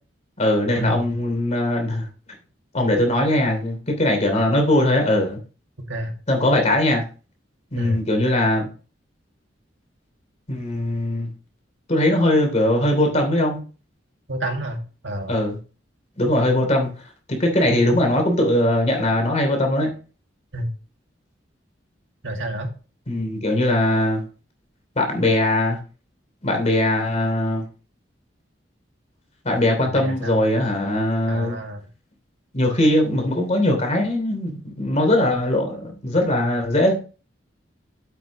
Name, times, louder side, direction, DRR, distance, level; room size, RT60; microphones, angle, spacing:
voice 1, 0.4-2.1 2.7-5.4 6.3-7.0 7.7-8.7 10.5-11.3 11.9-13.6 15.3-15.6 16.2-16.9 17.3-19.9 23.1-24.2 24.9-25.8 26.4-27.6 29.4-31.6 32.5-36.9, left 1 dB, 40° left, 3.0 m, -20 dB
voice 2, 14.3-15.4 20.5-20.7 22.2-22.7 29.8-30.4 31.3-31.8, right 1 dB, 85° right, 2.0 m, -29 dB
9.2 x 8.0 x 3.0 m
head